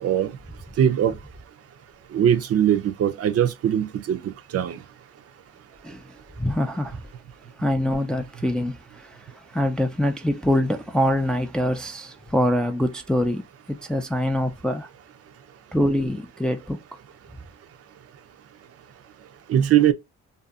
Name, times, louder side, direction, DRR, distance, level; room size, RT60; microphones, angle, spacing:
voice 1, 0.0-0.4 0.8-1.1 2.1-4.8 19.5-19.9, right 10 dB, 50° right, 0.5 m, -21 dB
voice 2, 6.4-7.1 7.6-14.9 15.7-16.8, left 1 dB, 5° left, 0.3 m, -24 dB
2.7 x 2.4 x 2.3 m
cardioid pair, 90°, 30 cm